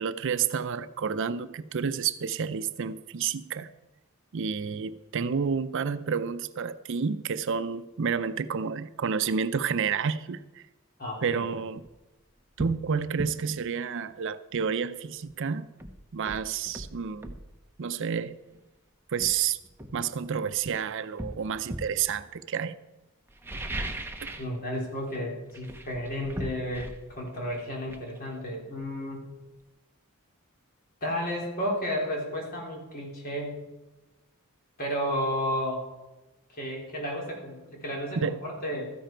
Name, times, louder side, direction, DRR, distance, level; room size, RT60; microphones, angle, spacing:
voice 1, 0.0-3.7 4.3-10.6 11.2-11.8 12.6-15.7 16.1-17.3 17.8-18.3 19.1-19.6 19.9-22.7 24.2-24.3 38.2-38.4, right 6 dB, 60° right, 13 dB, 0.5 m, -30 dB
voice 2, 11.0-11.5 24.4-26.9 27.2-29.3 31.0-33.6 34.8-35.8 36.5-38.8, equal, 45° left, -1 dB, 3.6 m, -32 dB
sound 1, 11.9-12.0 12.6-12.8 13.2-13.4 15.3-15.4 15.8-17.5 18.5-18.7 19.2-20.6 21.2-22.0 23.3-24.6 24.8-25.2 25.5-29.1 29.4-29.5, right 1 dB, 10° right, 0.9 m, -38 dB
13.5 x 10.0 x 4.5 m, 1.1 s
head